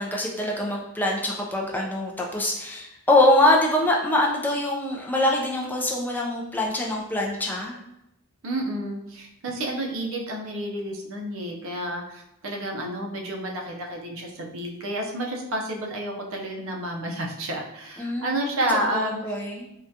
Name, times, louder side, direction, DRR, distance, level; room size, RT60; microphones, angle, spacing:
voice 1, 0.0-7.8 18.0-18.6 18.9-19.7, left 1 dB, 10° left, -1 dB, 0.3 m, -24 dB
voice 2, 8.4-19.3, right 1 dB, 65° right, 1 dB, 0.6 m, -30 dB
3.6 x 2.2 x 2.6 m, 0.85 s
head